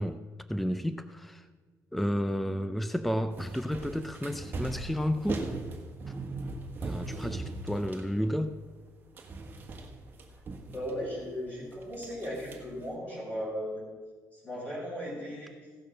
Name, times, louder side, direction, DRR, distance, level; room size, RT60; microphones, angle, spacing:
voice 1, 0.0-1.4 1.9-5.5 6.8-8.6, equal, ahead, 0.4 m, -31 dB
sound 1, 3.3-8.9 9.1-11.2 11.7-12.9, right 3 dB, 30° right, 1.4 m, -39 dB
voice 2, 10.7-13.8 14.3-15.5, equal, 20° left, 4.1 m, -36 dB
16.0 x 6.6 x 6.3 m
cardioid pair, 165°, 7 cm